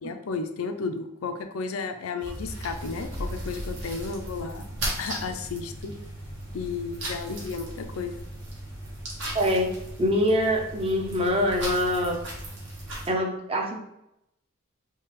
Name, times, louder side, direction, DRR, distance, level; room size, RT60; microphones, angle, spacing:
voice 1, 0.0-4.7 5.0-5.9 6.5-8.2, left 4 dB, 80° left, 7 dB, 0.4 m, -33 dB
sound 1, 2.2-13.1, right 1 dB, 60° right, 1.2 m, -36 dB
voice 2, 9.3-12.2 13.1-13.8, equal, 25° right, 0 dB, 0.5 m, -24 dB
3.7 x 2.8 x 3.0 m, 0.82 s
head